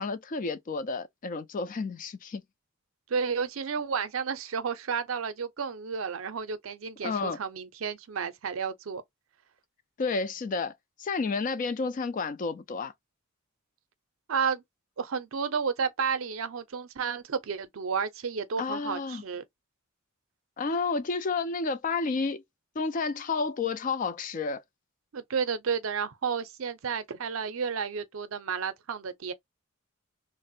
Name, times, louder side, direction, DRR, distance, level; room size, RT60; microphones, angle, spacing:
voice 1, 0.0-2.4 7.0-7.4 10.0-10.7 11.0-12.9 18.6-19.2 20.6-22.4 22.8-24.6, left 4 dB, 40° left, 0.4 m, -31 dB
voice 2, 3.1-9.0 14.3-14.6 15.0-19.4 25.1-29.3, right 6 dB, 70° right, 0.5 m, -31 dB
3.3 x 2.1 x 2.7 m
head